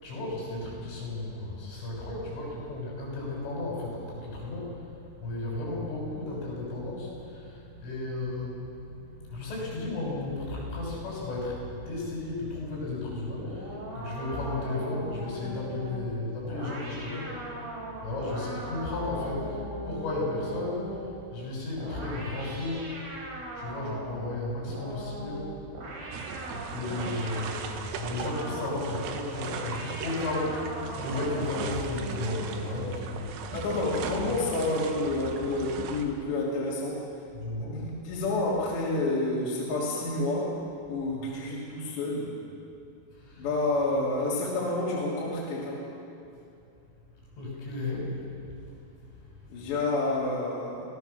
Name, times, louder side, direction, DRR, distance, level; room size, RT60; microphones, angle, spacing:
voice 1, 0.0-4.8 5.2-17.3 18.0-22.9 23.5-25.6 26.5-33.4 37.3-37.8 41.2-41.3 43.1-43.5 43.8-44.0 47.3-48.2 49.4-49.6, left 2 dB, 85° left, -4 dB, 9.2 m, -34 dB
sound 1, 13.4-21.2 21.8-24.3 24.7-27.6 28.2-28.8 29.4-32.3, right 1 dB, 50° right, 5.7 m, -40 dB
sound 2, 26.1-36.1, right 6 dB, 70° right, 3.1 m, -38 dB
voice 2, 33.5-37.0 37.6-40.5 40.9-42.3 43.4-45.8 49.5-50.9, left 2 dB, 65° left, -6 dB, 5.1 m, -29 dB
25.0 x 17.5 x 7.0 m, 2.6 s
omnidirectional pair, 5.4 m